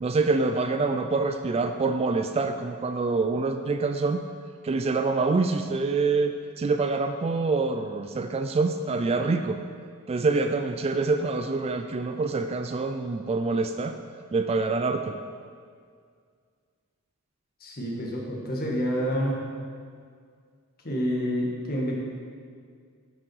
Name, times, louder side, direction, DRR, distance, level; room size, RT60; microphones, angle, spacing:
voice 1, 0.0-4.2 4.6-9.6 10.1-14.0 14.3-15.2, right 3 dB, 25° right, 7 dB, 0.3 m, -26 dB
voice 2, 17.6-19.4 20.8-21.9, equal, 45° left, -2 dB, 1.7 m, -28 dB
10.5 x 6.1 x 4.8 m, 2.1 s
head